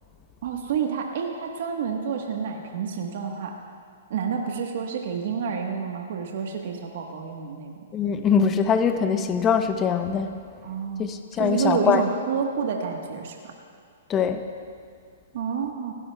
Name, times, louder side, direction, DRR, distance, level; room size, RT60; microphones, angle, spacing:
voice 1, 0.4-3.6 4.1-7.9 10.6-11.1 11.4-13.4 15.3-15.9, right 6 dB, 60° right, 2 dB, 1.3 m, -29 dB
voice 2, 7.9-10.3 11.0-12.0 14.1-14.4, left 6 dB, 20° left, 8 dB, 0.8 m, -22 dB
19.5 x 16.5 x 2.3 m, 2.3 s
hypercardioid pair, 135°, 0 cm